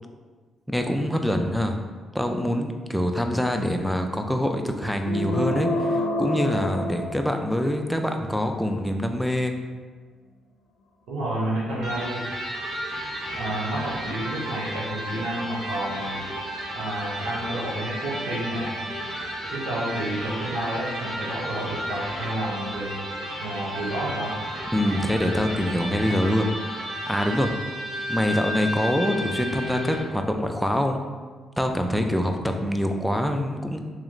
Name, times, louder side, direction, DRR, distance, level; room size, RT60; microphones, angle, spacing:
voice 1, 0.7-1.8 2.1-9.6 24.7-31.0 31.6-33.8, equal, ahead, 4 dB, 0.4 m, -25 dB
sound 1, 5.0-7.7, left 1 dB, 85° left, 0.5 m, -27 dB
voice 2, 11.1-12.2 13.3-16.2 16.7-18.7 19.5-22.9 23.4-24.3, right 1 dB, 90° right, -6 dB, 1.0 m, -30 dB
Electric guitar, 11.8-30.2, equal, 55° right, 1.2 m, -33 dB
3.1 x 3.0 x 3.8 m, 1.5 s
cardioid pair, 90°, 0 cm